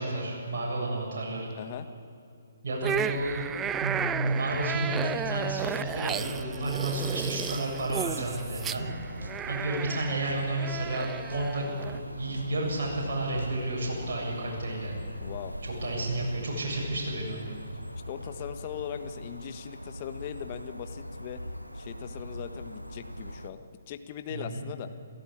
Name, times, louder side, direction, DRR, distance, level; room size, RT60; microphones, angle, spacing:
voice 1, 0.0-1.5 2.6-3.5 3.8-8.9 9.5-15.0 15.6-17.4 24.3-24.6, right 2 dB, 45° right, -4 dB, 7.6 m, -31 dB
sound 1, 2.8-12.0, right 8 dB, 15° right, 0.5 m, -34 dB
sound 2, 4.3-14.4, right 2 dB, 65° right, 2.1 m, -47 dB
sound 3, 5.9-23.5, equal, 90° right, 1.2 m, -41 dB
voice 2, 15.2-15.5 18.1-21.4 21.7-24.9, left 9 dB, 35° left, 8 dB, 1.4 m, -40 dB
29.5 x 15.0 x 8.6 m, 2.5 s
figure-of-eight pair, 130°, 0 cm